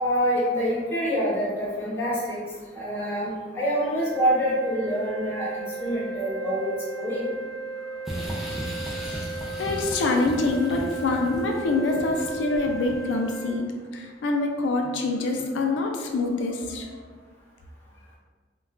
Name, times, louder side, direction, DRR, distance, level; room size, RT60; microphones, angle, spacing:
voice 1, 0.0-2.4 2.7-6.7 6.9-7.3, equal, 15° left, -8 dB, 0.9 m, -26 dB
sound 1, 3.9-13.6, right 3 dB, 55° right, 0.8 m, -36 dB
voice 2, 8.1-16.9, left 3 dB, 85° left, 2 dB, 0.3 m, -26 dB
sound 2, 8.1-13.2, equal, ahead, 0.4 m, -36 dB
2.3 x 2.2 x 3.5 m, 1.5 s
head